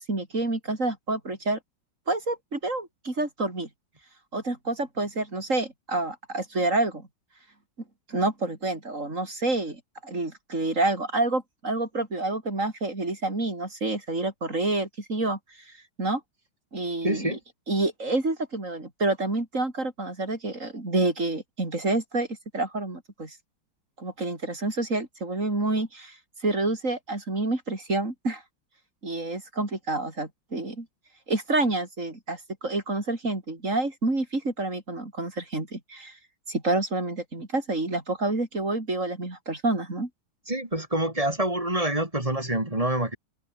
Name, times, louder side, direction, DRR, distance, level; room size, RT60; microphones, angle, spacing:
voice 1, 0.0-1.6 2.1-3.7 4.3-7.0 8.1-15.4 16.0-16.2 16.7-17.4 17.7-22.3 22.5-23.4 24.0-28.4 29.0-30.9 31.3-36.2 36.5-40.1, right 2 dB, 35° right, 5.1 m, -28 dB
voice 2, 17.0-17.4 40.5-43.2, right 1 dB, 15° right, 3.5 m, -26 dB
omnidirectional pair, 2.2 m